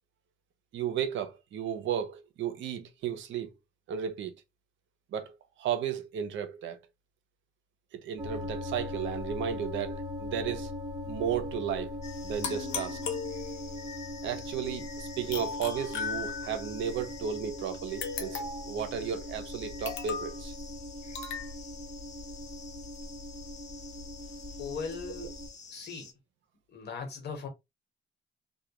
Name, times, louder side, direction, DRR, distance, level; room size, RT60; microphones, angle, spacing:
voice 1, 0.7-3.5 3.9-4.3 5.1-6.8 7.9-10.7 11.1-11.9 12.2-13.0 14.2-20.5 25.2-25.3, right 8 dB, 75° right, 0.6 m, -34 dB
sound 1, 8.2-25.5, left 1 dB, 20° right, 1.0 m, -40 dB
sound 2, 12.0-26.1, left 4 dB, 35° left, 0.7 m, -49 dB
sound 3, 12.4-13.8 15.3-16.7 18.0-18.8 19.8-20.4 21.1-21.5, left 6 dB, 80° left, 0.8 m, -36 dB
voice 2, 24.6-25.3 25.7-26.1 26.7-27.5, left 5 dB, 55° left, 1.1 m, -38 dB
2.3 x 2.1 x 2.9 m
cardioid pair, 90°, 20 cm